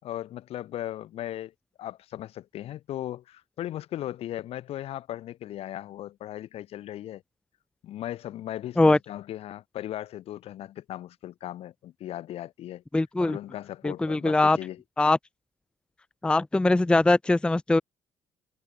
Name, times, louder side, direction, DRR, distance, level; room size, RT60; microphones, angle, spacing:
voice 1, 0.0-1.5 1.8-7.2 7.8-12.8 13.2-14.8, left 13 dB, 70° left, 5.2 m, -37 dB
voice 2, 12.9-13.4 13.8-14.6 15.0-15.2 16.2-17.8, left 2 dB, 10° left, 0.5 m, -21 dB
cardioid pair, 105°, 11 cm